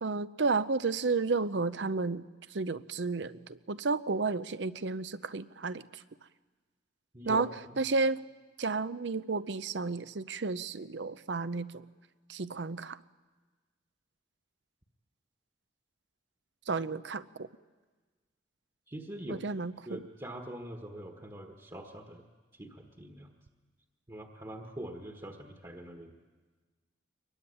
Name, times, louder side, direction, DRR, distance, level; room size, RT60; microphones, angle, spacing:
voice 1, 0.0-2.2 2.5-6.0 7.3-7.5 7.8-8.2 8.6-11.8 12.3-13.0 16.7-17.5 19.3-20.0, right 4 dB, 70° right, 14 dB, 0.7 m, -32 dB
voice 2, 18.9-19.4 19.9-22.2 22.5-23.3 24.1-26.1, right 1 dB, 20° right, 2 dB, 1.5 m, -43 dB
23.5 x 22.0 x 9.9 m, 1.4 s
head